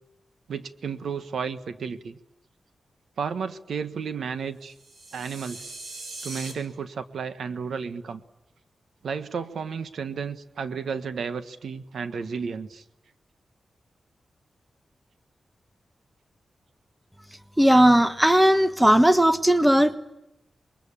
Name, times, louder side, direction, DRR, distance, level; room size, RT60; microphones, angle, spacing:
voice 1, 0.5-2.2 3.2-4.7 5.1-5.7 6.2-8.2 9.0-12.8, right 6 dB, 85° right, 11 dB, 1.4 m, -32 dB
sound 1, 4.7-6.5, right 2 dB, 65° right, 5.6 m, -40 dB
voice 2, 17.6-20.0, equal, 10° right, 11 dB, 1.3 m, -17 dB
26.5 x 22.5 x 8.7 m, 0.93 s
wide cardioid pair, 95°, 0 cm